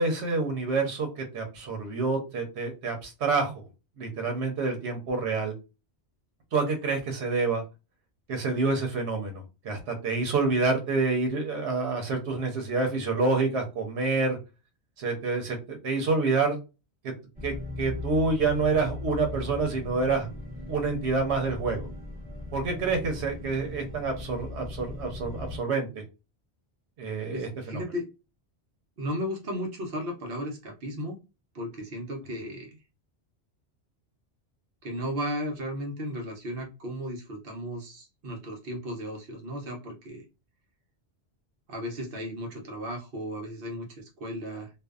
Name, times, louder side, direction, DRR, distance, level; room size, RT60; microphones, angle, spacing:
voice 1, 0.0-3.5 4.0-5.5 6.5-7.6 8.3-14.4 15.0-16.6 17.0-17.1 17.4-20.3 20.7-21.9 22.5-25.9 27.0-27.8, right 4 dB, 90° right, 4 dB, 1.0 m, -27 dB
sound 1, 17.3-25.6, left 2 dB, 10° right, 0.9 m, -38 dB
voice 2, 27.3-28.0 29.0-31.2 31.5-32.8 34.8-40.2 41.7-44.7, equal, 60° right, 1 dB, 0.9 m, -35 dB
2.6 x 2.2 x 2.3 m, 0.28 s
omnidirectional pair, 1.1 m